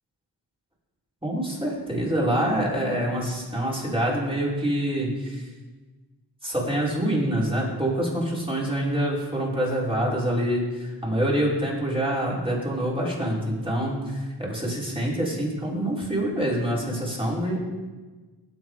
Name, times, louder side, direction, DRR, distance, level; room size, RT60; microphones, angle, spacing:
voice 1, 1.2-5.5 6.4-17.6, right 1 dB, 10° right, -5 dB, 5.1 m, -26 dB
20.0 x 8.2 x 5.0 m, 1.3 s
wide cardioid pair, 55°, 44 cm